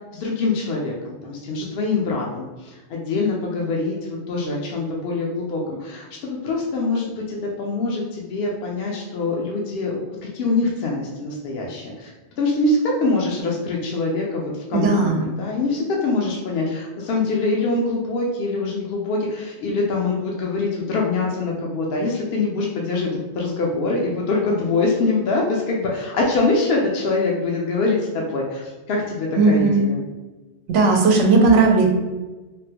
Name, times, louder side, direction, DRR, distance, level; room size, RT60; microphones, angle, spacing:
voice 1, 0.1-23.1 23.4-30.0, left 3 dB, 65° left, -2 dB, 0.7 m, -24 dB
voice 2, 14.7-15.3 29.4-29.9 30.7-31.9, right 3 dB, 80° right, 1 dB, 0.9 m, -16 dB
3.5 x 2.1 x 2.8 m, 1.2 s
omnidirectional pair, 1.2 m